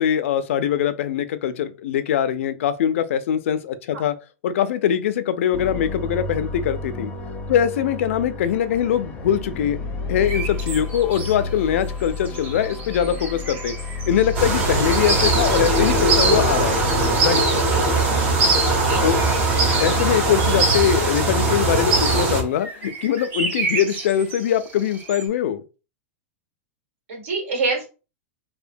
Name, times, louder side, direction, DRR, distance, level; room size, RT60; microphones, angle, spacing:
voice 1, 0.0-4.1 4.4-7.1 7.5-9.8 10.1-13.7 14.1-16.8 17.2-17.4 19.0-19.2 19.8-25.6, left 9 dB, 75° left, 0.4 m, -22 dB
sound 1, 5.5-17.3, left 3 dB, 20° left, 0.5 m, -31 dB
sound 2, 10.2-25.3, right 4 dB, 25° right, 0.6 m, -35 dB
sound 3, 14.3-22.4, right 2 dB, 60° right, 1.0 m, -19 dB
voice 2, 18.1-19.1 27.1-27.9, right 3 dB, 80° right, 1.4 m, -28 dB
2.9 x 2.1 x 2.5 m
supercardioid pair, 140°, 7 cm